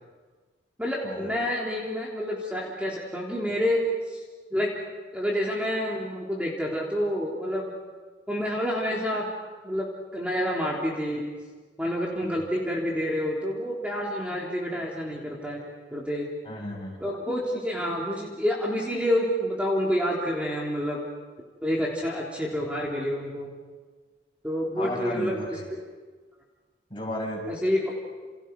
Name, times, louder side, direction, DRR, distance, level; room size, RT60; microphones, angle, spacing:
voice 1, 0.8-4.2 4.5-4.7 5.1-7.7 8.3-9.3 9.6-11.3 11.8-15.6 15.9-16.3 17.0-21.0 21.6-23.5 24.4-25.8 27.5-27.9, equal, 5° right, -3 dB, 3.4 m, -28 dB
voice 2, 16.4-17.0 24.8-25.7 26.9-27.4, left 1 dB, 30° left, -2 dB, 7.4 m, -34 dB
30.0 x 29.5 x 5.4 m, 1.4 s
head